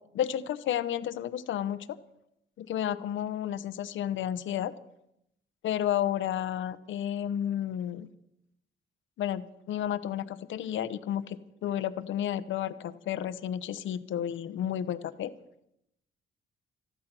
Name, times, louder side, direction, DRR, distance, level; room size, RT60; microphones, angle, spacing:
voice 1, 0.1-1.9 2.6-4.7 5.6-8.1 9.2-15.3, left 10 dB, 75° left, 14 dB, 0.9 m, -32 dB
14.0 x 13.0 x 6.0 m, 0.81 s
cardioid pair, 90°, 20 cm